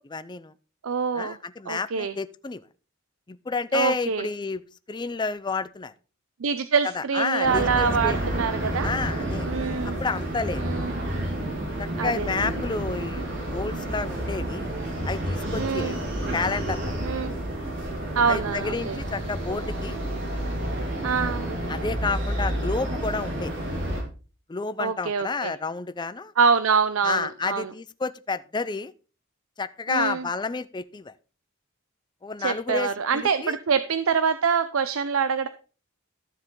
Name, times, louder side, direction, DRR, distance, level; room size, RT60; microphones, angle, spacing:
voice 1, 0.1-0.5 1.1-2.6 3.3-4.6 4.9-5.9 6.9-8.3 8.8-9.5 9.8-10.6 11.8-14.7 15.1-16.0 16.3-17.0 18.3-20.0 21.7-23.5 24.5-26.3 27.0-28.9 29.6-31.1 32.2-33.6, left 4 dB, 20° left, 13 dB, 0.4 m, -30 dB
voice 2, 0.8-1.4 1.7-2.1 3.7-4.3 6.4-8.9 9.4-10.0 10.6-11.0 12.0-12.3 15.6-16.0 17.0-17.4 18.2-19.0 21.0-21.5 24.8-25.5 26.4-27.7 29.9-30.3 32.4-35.5, right 5 dB, 75° right, 11 dB, 0.6 m, -25 dB
sound 1, 7.4-24.0, right 1 dB, 60° right, 3.8 m, -30 dB
13.0 x 7.2 x 3.8 m, 0.37 s
head